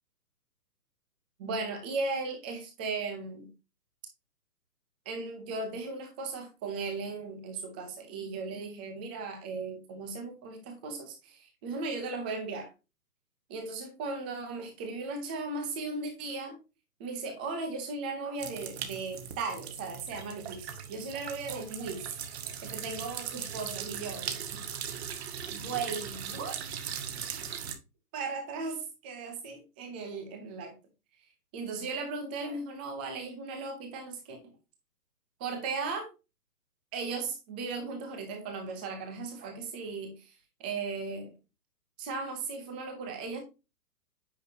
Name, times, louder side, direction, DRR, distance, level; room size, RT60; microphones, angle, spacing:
voice 1, 1.4-3.5 5.1-12.7 13.5-16.6 17.0-22.1 22.6-24.6 25.5-26.6 28.1-30.7 31.5-34.4 35.4-36.1 36.9-40.3 40.6-41.3 42.0-43.4, right 4 dB, 5° right, 0.5 m, -37 dB
sound 1, 18.4-27.7, right 8 dB, 40° right, 1.8 m, -39 dB
9.4 x 6.1 x 2.8 m
hypercardioid pair, 150°, 48 cm